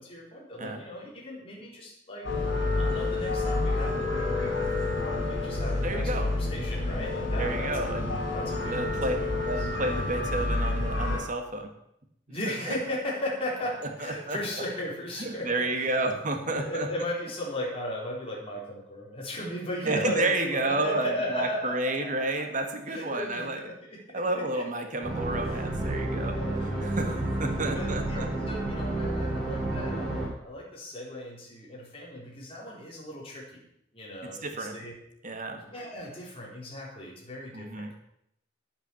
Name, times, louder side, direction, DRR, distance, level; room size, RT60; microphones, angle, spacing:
voice 1, 0.0-2.3 2.7-7.7 8.3-9.7 12.3-15.9 16.5-22.1 22.4-22.5 22.9-24.6 25.3-25.6 26.3-26.9 27.7-33.6 33.9-34.9 35.6-37.9, left 1 dB, 30° left, -4 dB, 4.0 m, -36 dB
sound 1, 2.2-11.2, left 2 dB, 75° left, 4.5 m, -29 dB
voice 2, 5.8-6.3 7.4-8.1 8.7-9.2 9.4-11.7 14.0-14.4 15.2-16.9 19.8-23.6 24.1-26.4 26.8-28.3 34.2-34.8 35.2-35.6 37.5-37.9, right 2 dB, 40° right, 5 dB, 1.7 m, -30 dB
sound 2, 25.0-30.3, right 1 dB, ahead, 4.4 m, -30 dB
9.9 x 8.7 x 7.1 m, 0.76 s
head